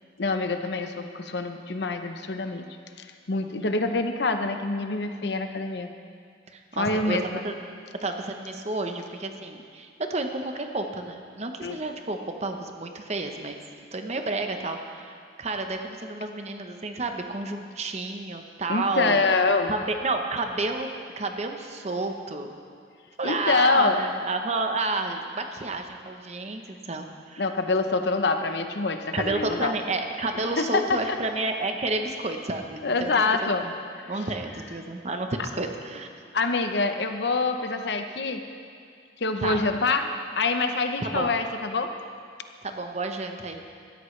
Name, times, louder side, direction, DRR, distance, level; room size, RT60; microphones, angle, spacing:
voice 1, 0.2-2.7 3.3-5.9 6.7-7.4 11.6-11.8 18.7-19.7 23.2-24.0 27.4-29.7 30.6-31.2 32.8-33.6 34.0-34.1 36.3-38.4 39.2-40.1 40.4-41.9, left 3 dB, 65° left, 7 dB, 0.8 m, -25 dB
voice 2, 6.5-7.2 7.4-7.5 8.0-13.6 13.9-19.3 19.7-20.9 21.2-22.5 23.2-27.5 29.1-33.1 33.4-33.7 34.1-36.1 39.4-39.6 41.0-41.3 42.6-43.6, right 2 dB, 35° right, 5 dB, 0.9 m, -30 dB
17.5 x 13.0 x 3.2 m, 2.3 s
head